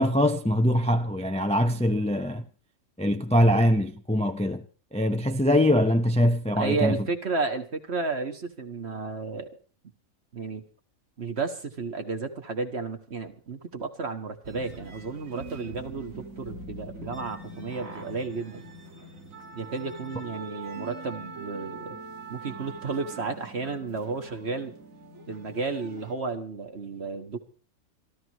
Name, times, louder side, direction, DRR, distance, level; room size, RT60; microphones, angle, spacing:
voice 1, 0.0-2.4 3.0-4.6 4.9-7.0, equal, 5° left, 0.6 m, -23 dB
voice 2, 6.6-9.5 10.3-10.6 11.2-18.7 19.5-22.0 22.3-24.7 25.3-27.4, right 4 dB, 50° right, 1.7 m, -32 dB
sound 1, 14.4-26.1, right 3 dB, 70° right, 2.2 m, -43 dB
27.5 x 13.0 x 3.1 m
omnidirectional pair, 1.4 m